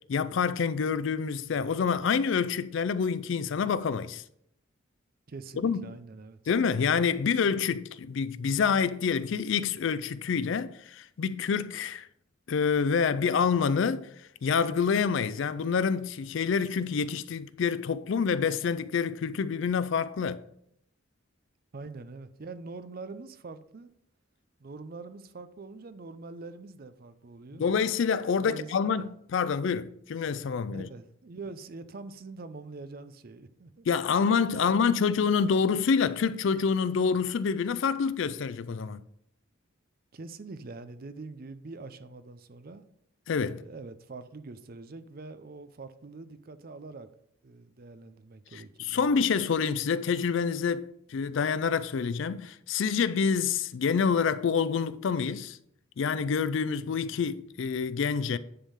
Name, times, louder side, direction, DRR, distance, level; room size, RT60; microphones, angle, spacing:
voice 1, 0.1-4.2 5.6-5.8 6.5-12.1 12.5-14.1 14.4-20.4 27.6-30.9 33.9-39.0 43.3-43.6 48.5-55.6 56.0-58.4, left 6 dB, 60° left, 0.4 m, -27 dB
voice 2, 5.3-6.4 21.7-23.9 24.6-27.7 28.4-29.1 30.7-33.9 34.5-34.7 40.1-42.9 43.5-47.1 47.4-49.2, right 3 dB, 45° right, 0.5 m, -44 dB
10.0 x 3.6 x 5.6 m
head